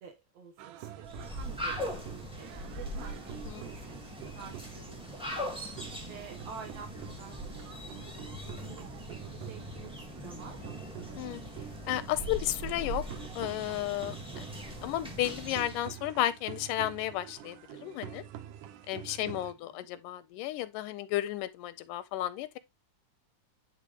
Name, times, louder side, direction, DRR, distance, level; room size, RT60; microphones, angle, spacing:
voice 1, 0.0-5.5 5.8-10.8 19.2-19.9, right 6 dB, 60° right, 2.1 m, -50 dB
sound 1, 0.6-19.5, right 11 dB, 85° right, 2.2 m, -47 dB
sound 2, 1.0-15.9, equal, 5° right, 0.4 m, -41 dB
voice 2, 11.9-13.0 13.4-14.5 14.8-18.2 18.9-22.6, left 14 dB, 85° left, 2.2 m, -33 dB
10.0 x 3.7 x 3.1 m
omnidirectional pair, 3.7 m